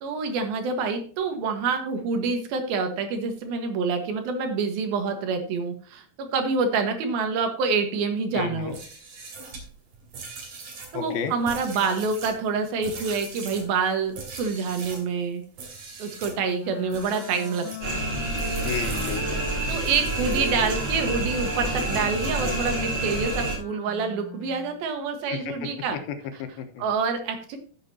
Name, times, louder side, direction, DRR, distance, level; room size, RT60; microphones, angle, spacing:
voice 1, 0.0-8.8 10.9-15.4 16.0-18.0 19.7-26.0 26.8-27.6, right 4 dB, 80° right, 6 dB, 3.3 m, -27 dB
voice 2, 8.3-8.7 10.9-11.3 18.6-19.5 25.3-26.0 26.4-26.8, left 7 dB, 90° left, 7 dB, 3.1 m, -32 dB
sound 1, 8.6-15.1 15.5-16.4 16.8-17.9 18.4-20.8, right 4 dB, 60° right, 3.9 m, -41 dB
Wind instrument woodwind instrument, 16.6-24.8, left 8 dB, 55° left, 2.3 m, -40 dB
sound 2, 17.8-23.5, right 2 dB, 35° right, 4.8 m, -28 dB
14.5 x 7.5 x 2.8 m, 0.43 s
omnidirectional pair, 4.2 m